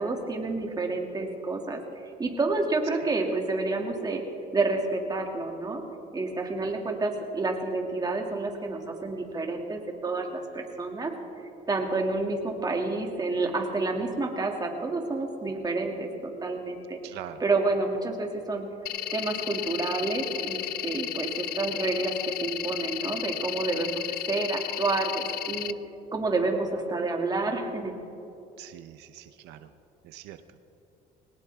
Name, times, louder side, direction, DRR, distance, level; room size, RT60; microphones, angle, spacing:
voice 1, 0.0-1.8 2.2-4.2 4.5-5.8 6.1-11.1 11.7-17.0 17.4-18.7 19.1-24.0 24.3-25.7 26.1-27.9, right 3 dB, 25° right, 2 dB, 2.3 m, -29 dB
voice 2, 17.0-17.4 28.6-29.7 30.0-30.7, right 12 dB, 90° right, 10 dB, 0.7 m, -44 dB
sound 1, 18.9-25.7, left 14 dB, 65° left, 0.5 m, -33 dB
21.5 x 18.5 x 3.5 m, 2.8 s
cardioid pair, 110°, 17 cm